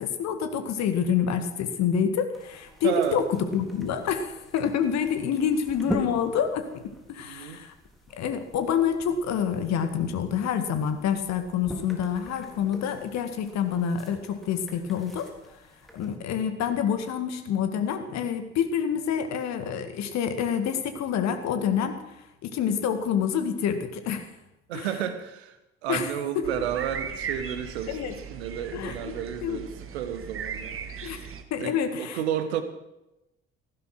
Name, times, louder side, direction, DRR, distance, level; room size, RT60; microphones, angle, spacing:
voice 1, 0.0-7.7 8.2-15.3 15.9-22.0 22.4-24.3 24.7-24.9 25.9-26.6 27.9-28.1 28.7-29.1 29.4-29.6 31.0-31.2 31.5-32.2, left 7 dB, 55° left, 8 dB, 1.9 m, -27 dB
sound 1, 2.3-16.2, left 1 dB, ahead, 3.6 m, -42 dB
voice 2, 2.8-3.2 7.2-7.6 24.7-25.6 25.8-30.8 31.6-32.6, right 9 dB, 70° right, 10 dB, 1.4 m, -32 dB
sound 2, 26.4-31.4, right 7 dB, 40° right, 1.7 m, -38 dB
16.0 x 11.5 x 6.0 m, 0.92 s
figure-of-eight pair, 50°, 33 cm